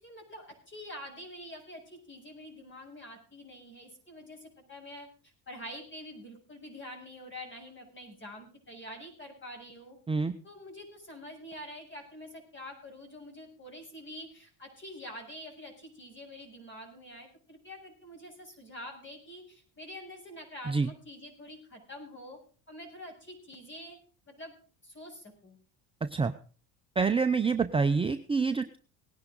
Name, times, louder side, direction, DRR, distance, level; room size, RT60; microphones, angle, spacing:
voice 1, 0.0-5.1 5.5-10.0 10.4-22.4 22.7-24.0 24.3-24.5 24.8-25.6, left 1 dB, 30° left, 2 dB, 7.3 m, -46 dB
voice 2, 26.0-26.3 27.0-28.8, right 4 dB, 15° right, 8 dB, 0.6 m, -27 dB
19.0 x 10.5 x 3.9 m, 0.40 s
cardioid pair, 110°, 39 cm